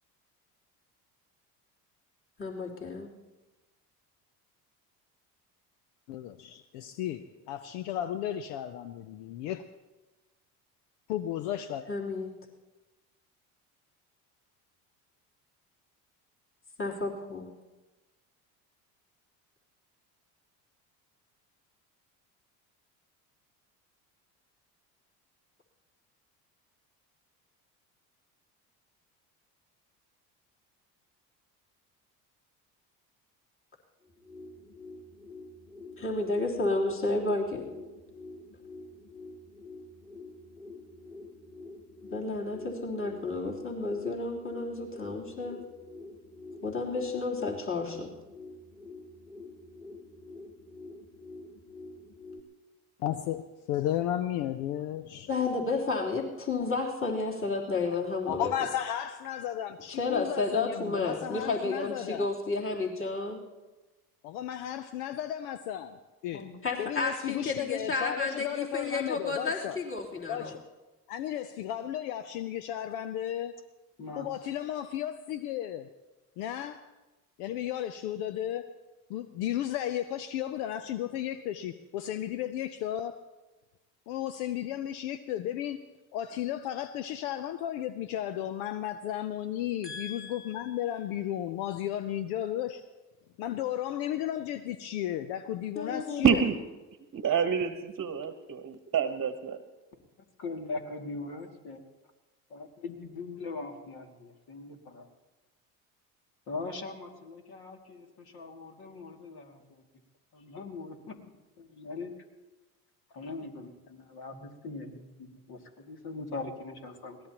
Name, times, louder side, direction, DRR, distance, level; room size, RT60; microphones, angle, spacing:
voice 1, 2.4-3.1 11.9-12.3 16.8-17.5 36.0-37.7 42.1-45.6 46.6-48.1 55.3-58.5 59.9-63.4 66.6-70.5 89.8-90.7 95.8-96.3, left 3 dB, 30° left, -4 dB, 3.4 m, -31 dB
voice 2, 6.1-9.6 11.1-11.9 53.0-55.3 58.3-62.3 64.2-66.0 66.2-66.4 66.8-69.8 70.3-70.6 71.1-73.5 74.2-75.9 76.4-76.8 77.4-78.6 79.1-83.2 84.1-85.8 86.1-92.8 93.4-96.4, left 11 dB, 75° left, 12 dB, 0.7 m, -34 dB
sound 1, 34.0-52.4, left 2 dB, 10° left, 2.1 m, -47 dB
voice 3, 74.0-74.3 100.4-101.8 102.5-105.1 106.5-109.8 110.3-111.2 111.6-112.1 113.1-117.2, left 3 dB, 55° left, 3 dB, 2.5 m, -41 dB
voice 4, 96.2-96.5 97.1-99.6, right 7 dB, 35° right, 9 dB, 1.1 m, -27 dB
22.0 x 17.5 x 3.0 m, 1.1 s
hypercardioid pair, 70°, 45 cm